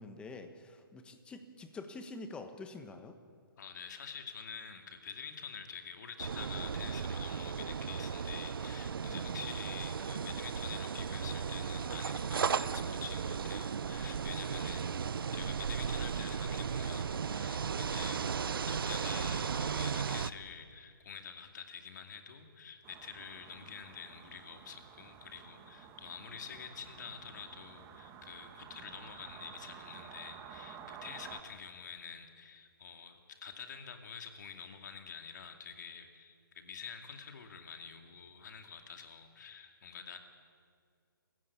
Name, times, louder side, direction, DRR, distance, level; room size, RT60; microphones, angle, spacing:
voice 1, 0.0-3.2 9.0-9.2, left 3 dB, 10° left, 7 dB, 1.3 m, -46 dB
voice 2, 3.6-18.3 18.7-40.2, left 7 dB, 50° left, 5 dB, 2.5 m, -47 dB
sound 1, 6.2-20.3, right 6 dB, 70° right, 0.7 m, -35 dB
sound 2, 22.8-31.4, right 8 dB, 20° right, 1.5 m, -52 dB
28.0 x 15.5 x 8.5 m, 2.2 s
hypercardioid pair, 150°, 12 cm